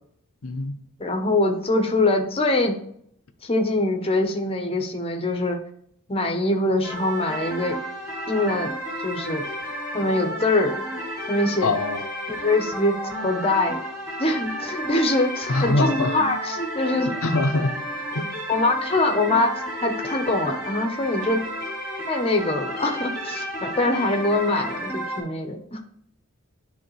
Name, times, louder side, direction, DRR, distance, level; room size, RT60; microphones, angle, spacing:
voice 1, 0.4-0.7 11.6-12.1 15.5-16.1 16.9-17.7 18.1-18.2, left 2 dB, 65° left, 7 dB, 0.7 m, -23 dB
voice 2, 1.0-2.8 3.4-5.6 6.1-7.8 8.3-8.7 9.0-9.4 9.9-10.8 11.3-11.7 12.3-12.9 13.2-13.8 14.2-17.1 18.5-21.4 22.1-25.8, left 2 dB, 25° left, 4 dB, 0.9 m, -23 dB
sound 1, 6.8-25.2, equal, 15° right, 2.9 m, -32 dB
10.5 x 3.5 x 3.2 m, 0.67 s
head